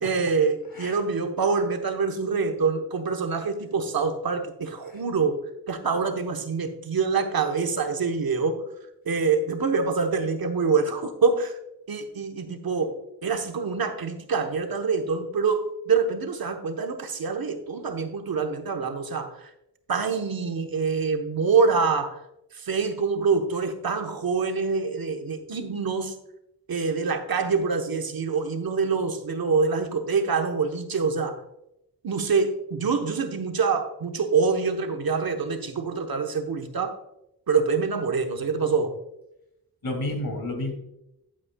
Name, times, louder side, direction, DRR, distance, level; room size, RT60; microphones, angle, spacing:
voice 1, 0.0-5.4 5.7-8.6 9.0-11.5 11.9-12.9 13.2-19.5 19.9-22.2 22.5-26.1 26.7-31.4 32.0-37.0 37.5-38.9, right 5 dB, 65° right, 5 dB, 1.0 m, -25 dB
voice 2, 39.8-40.7, left 1 dB, 65° left, 3 dB, 2.3 m, -30 dB
11.0 x 8.4 x 2.2 m, 0.85 s
wide cardioid pair, 130°, 38 cm